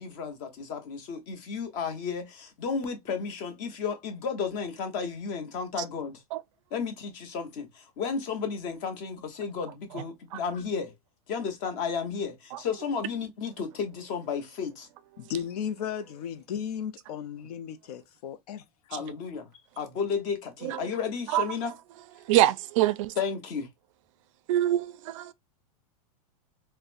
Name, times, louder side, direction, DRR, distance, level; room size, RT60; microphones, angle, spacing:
voice 1, 0.0-6.2 6.7-10.9 11.3-14.9 18.9-19.5 19.8-21.7 23.2-23.7, left 6 dB, 40° left, 0.9 m, -33 dB
voice 2, 15.2-18.6, left 8 dB, 75° left, 0.5 m, -35 dB
voice 3, 22.2-23.1 24.5-25.3, right 13 dB, 55° right, 0.4 m, -25 dB
3.9 x 2.1 x 2.5 m
supercardioid pair, 145°, 20 cm